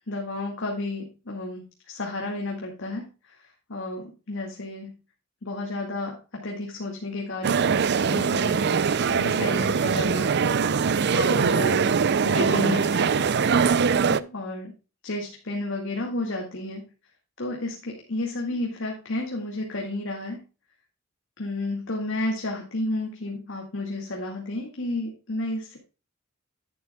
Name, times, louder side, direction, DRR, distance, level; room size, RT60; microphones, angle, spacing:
voice 1, 0.1-5.0 5.4-7.6 8.1-8.7 9.1-10.4 11.1-12.0 12.2-13.3 14.1-14.7 15.0-16.9 17.4-20.5 21.4-25.8, left 2 dB, 65° left, 0 dB, 2.2 m, -32 dB
sound 1, 7.4-14.2, right 5 dB, 55° right, 0.5 m, -22 dB
10.5 x 10.5 x 2.3 m, 0.32 s
head